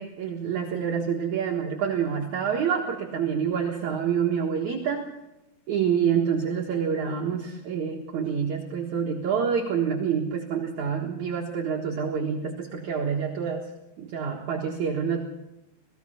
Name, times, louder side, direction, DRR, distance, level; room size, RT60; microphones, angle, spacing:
voice 1, 0.0-5.1 5.7-13.7 14.0-15.2, right 7 dB, 55° right, 0 dB, 2.5 m, -27 dB
28.0 x 18.5 x 5.7 m, 0.95 s
omnidirectional pair, 4.6 m